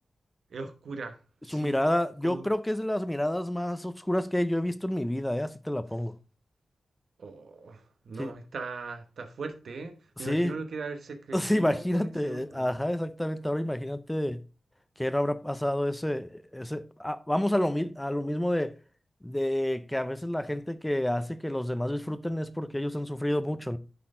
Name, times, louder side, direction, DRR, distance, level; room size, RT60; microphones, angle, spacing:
voice 1, 0.5-1.2 1.4-1.8 2.2-2.4 7.2-12.7, right 3 dB, 75° right, 1.1 m, -39 dB
voice 2, 1.5-6.1 8.2-8.3 10.2-10.6 11.3-14.4 15.0-18.7 19.2-23.8, left 1 dB, 10° left, 0.5 m, -29 dB
10.0 x 4.2 x 3.7 m
wide cardioid pair, 85°, 0 cm